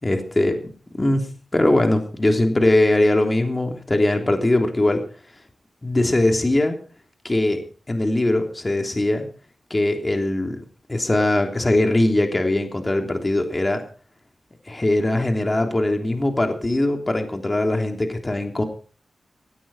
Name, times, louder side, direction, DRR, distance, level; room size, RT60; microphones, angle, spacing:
voice 1, 0.0-0.7 1.0-5.0 5.8-6.8 7.2-7.6 7.9-9.3 9.7-10.6 10.9-13.8 14.7-18.6, left 1 dB, 30° left, 4 dB, 3.3 m, -21 dB
17.5 x 16.0 x 4.3 m, 0.40 s
cardioid pair, 50°, 0 cm